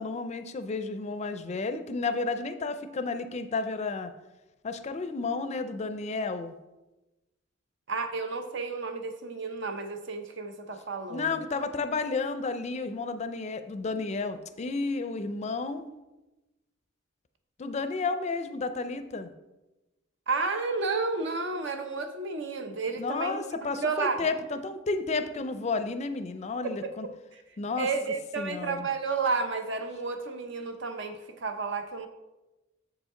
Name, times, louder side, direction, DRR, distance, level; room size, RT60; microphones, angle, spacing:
voice 1, 0.0-4.1 4.6-6.5 11.1-15.8 17.6-19.3 23.0-27.1 27.6-27.9 28.4-28.9, left 3 dB, 35° left, 10 dB, 0.4 m, -32 dB
voice 2, 7.9-11.3 20.3-23.4 23.8-24.3 26.8-26.9 27.3-27.4 27.8-32.1, right 4 dB, 65° right, 7 dB, 0.7 m, -31 dB
7.3 x 5.1 x 3.7 m, 1.1 s
head